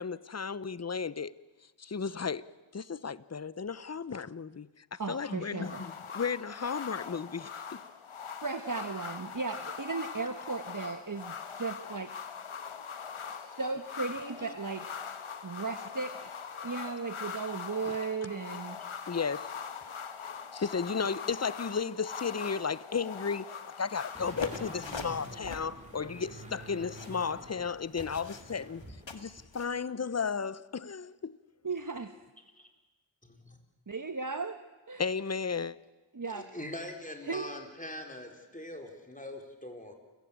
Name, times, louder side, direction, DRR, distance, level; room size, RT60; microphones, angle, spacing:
voice 1, 0.0-1.3 1.8-2.4 2.7-7.8 17.8-17.9 18.5-18.6 19.1-19.5 20.5-28.8 29.1-31.4 35.0-35.8, left 5 dB, 35° left, 0.8 m, -34 dB
voice 2, 5.0-5.8 8.4-12.1 13.3-14.8 15.4-16.3 16.6-18.8 31.6-32.1 33.9-34.6 34.9-35.0 36.1-36.5 37.2-37.5, right 4 dB, 40° right, 1.1 m, -36 dB
sound 1, 5.6-25.0, left 6 dB, 90° left, 1.2 m, -42 dB
sound 2, 24.1-29.0 29.4-29.5, right 1 dB, 15° right, 5.9 m, -48 dB
sound 3, 24.3-29.7, left 4 dB, 65° left, 2.0 m, -44 dB
voice 3, 36.3-39.9, left 1 dB, 15° left, 4.3 m, -42 dB
28.5 x 15.5 x 8.8 m
wide cardioid pair, 45°, 48 cm